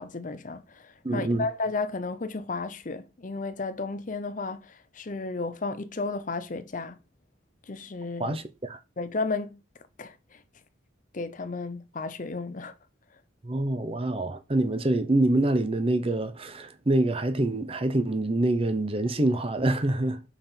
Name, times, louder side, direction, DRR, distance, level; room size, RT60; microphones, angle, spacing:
voice 1, 0.0-7.0 7.7-8.4 9.0-9.6 10.0-10.4 11.1-12.7, left 3 dB, 40° left, 0.6 m, -33 dB
voice 2, 1.0-1.5 8.2-8.8 13.4-20.2, right 2 dB, 30° right, 0.7 m, -26 dB
5.6 x 5.3 x 4.4 m
head